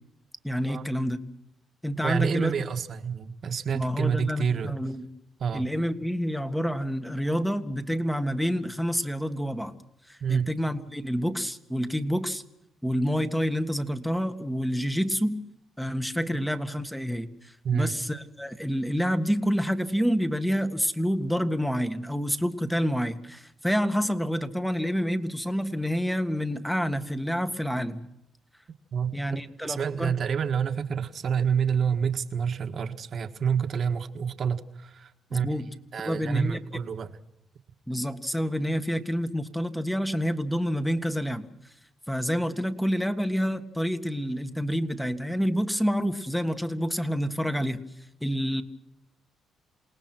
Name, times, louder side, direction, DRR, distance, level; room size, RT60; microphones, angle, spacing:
voice 1, 0.4-1.2 1.8-2.5 3.7-5.1 5.5-9.7 10.1-12.4 12.8-15.4 15.8-28.0 29.1-30.1 35.3-35.7 36.0-36.6 37.9-41.5 42.1-47.8 48.2-48.6, equal, 5° left, 9 dB, 1.7 m, -28 dB
voice 2, 2.0-4.7 5.4-5.7 10.2-10.5 17.6-17.9 28.9-29.2 29.6-35.5 35.9-37.1, right 7 dB, 55° right, 7 dB, 1.6 m, -28 dB
28.0 x 18.5 x 6.2 m, 0.84 s
cardioid pair, 90°, 0 cm